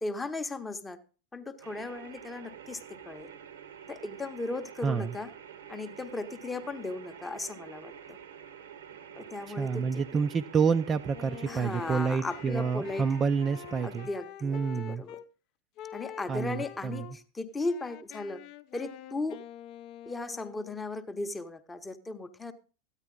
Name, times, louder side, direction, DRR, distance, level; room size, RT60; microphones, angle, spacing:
voice 1, 0.0-1.0 1.3-3.3 3.9-5.3 5.7-8.2 9.1-10.2 11.5-13.1 13.8-15.2 15.9-18.4 18.7-19.4 20.1-22.5, left 2 dB, 10° left, 9 dB, 0.8 m, -36 dB
sound 1, 1.6-14.1, right 8 dB, 60° right, 0.9 m, -48 dB
voice 2, 4.8-5.1 9.5-14.1 14.4-15.0 16.3-17.1, right 6 dB, 20° right, 8 dB, 0.4 m, -28 dB
Wind instrument woodwind instrument, 11.1-15.3 15.8-17.2 17.6-20.8, left 11 dB, 40° left, 0.5 m, -46 dB
13.5 x 9.8 x 3.7 m, 0.37 s
figure-of-eight pair, 90°, 0 cm